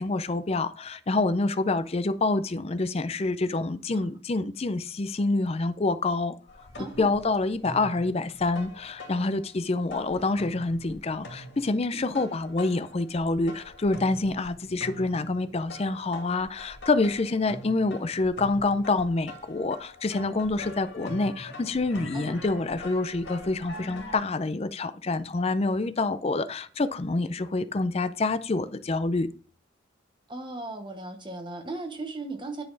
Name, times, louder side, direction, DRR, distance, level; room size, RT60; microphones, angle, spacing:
voice 1, 0.0-6.3 7.0-29.3, left 3 dB, 30° left, 0.5 m, -27 dB
sound 1, 6.5-9.6 9.9-24.2, left 1 dB, 60° left, 2.5 m, -44 dB
voice 2, 6.8-7.2 11.9-12.3 22.1-22.4 30.3-32.6, right 2 dB, 25° right, 1.1 m, -37 dB
10.0 x 4.2 x 3.9 m
head